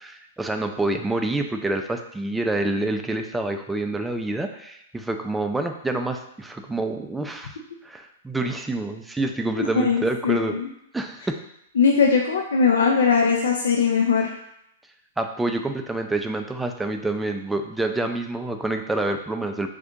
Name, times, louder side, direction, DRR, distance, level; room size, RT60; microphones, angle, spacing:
voice 1, 0.0-7.6 7.8-10.6 10.9-11.4 15.2-19.7, right 2 dB, 5° right, 5 dB, 0.3 m, -27 dB
voice 2, 9.6-10.7 11.8-14.3, left 5 dB, 75° left, 1 dB, 0.4 m, -20 dB
2.6 x 2.5 x 3.6 m, 0.77 s
hypercardioid pair, 120°, 0 cm